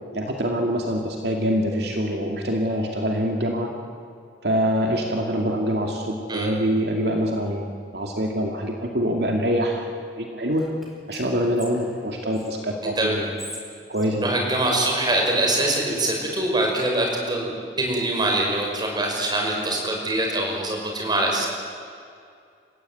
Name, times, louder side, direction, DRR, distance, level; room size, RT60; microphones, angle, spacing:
voice 1, 0.1-3.7 4.4-9.9 10.2-10.7 11.1-13.3 13.9-14.3, equal, 65° right, 1 dB, 2.4 m, -25 dB
Whispering, 10.5-12.5 13.1-15.3, left 1 dB, ahead, 4.4 m, -44 dB
voice 2, 14.2-21.5, right 1 dB, 25° right, 0 dB, 5.6 m, -24 dB
29.5 x 16.0 x 9.3 m, 2.4 s
head